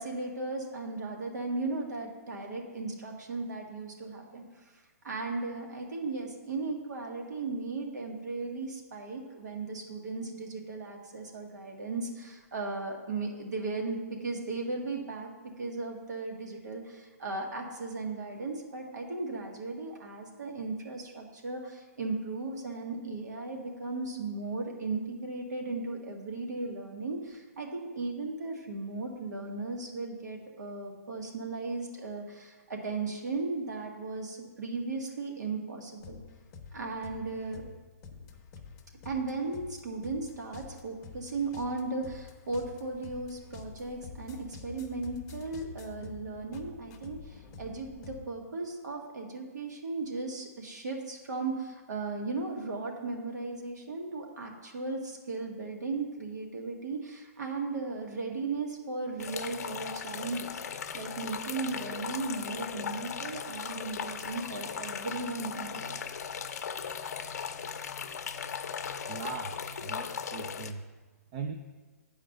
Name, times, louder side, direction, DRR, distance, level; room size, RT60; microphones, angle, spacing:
voice 1, 0.0-15.3 15.6-36.2 36.7-37.6 39.1-66.0, right 3 dB, 85° right, 1 dB, 1.9 m, -36 dB
sound 1, 36.0-48.3, left 5 dB, 25° left, 0.7 m, -48 dB
sound 2, 59.2-70.7, left 7 dB, 70° left, 0.6 m, -38 dB
voice 2, 69.1-70.8 71.3-71.5, right 5 dB, 25° right, 5 dB, 0.4 m, -39 dB
8.6 x 4.9 x 6.6 m, 1.3 s
hypercardioid pair, 165°, 9 cm